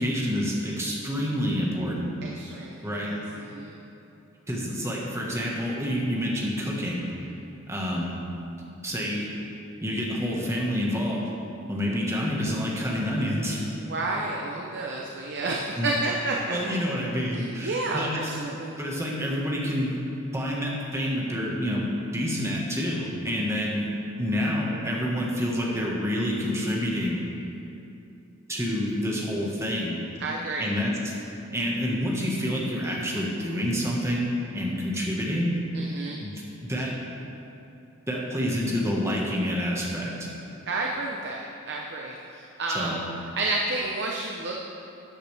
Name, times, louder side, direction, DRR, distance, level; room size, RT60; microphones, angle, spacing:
voice 1, 0.0-2.1 2.8-3.1 4.5-7.1 7.7-8.2 8.8-9.3 9.8-11.3 11.7-13.7 15.8-15.9 16.5-18.3 18.8-20.0 20.3-21.8 22.1-23.9 24.1-27.2 28.5-30.0 30.6-31.1 31.5-35.6 36.2-36.3 36.6-36.9 38.1-40.1 42.7-43.0, equal, 15° right, -3 dB, 1.5 m, -28 dB
voice 2, 2.2-3.8 13.8-16.7 17.3-18.8 30.2-30.7 35.7-36.2 40.7-43.0 43.3-44.6, right 2 dB, 55° right, -1 dB, 0.8 m, -31 dB
13.0 x 8.9 x 3.5 m, 2.8 s
head